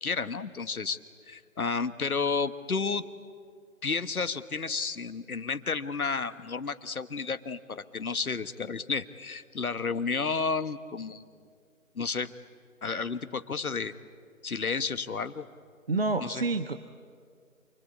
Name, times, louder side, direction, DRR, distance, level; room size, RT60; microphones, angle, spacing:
voice 1, 0.0-1.0 1.3-3.0 3.8-11.2 11.9-12.3 12.8-13.9 14.4-15.4 16.2-16.4, left 4 dB, 80° left, 12 dB, 1.4 m, -31 dB
voice 2, 15.9-16.8, right 3 dB, 45° right, 11 dB, 0.8 m, -28 dB
28.5 x 23.5 x 8.4 m, 2.1 s
figure-of-eight pair, 165°, 43 cm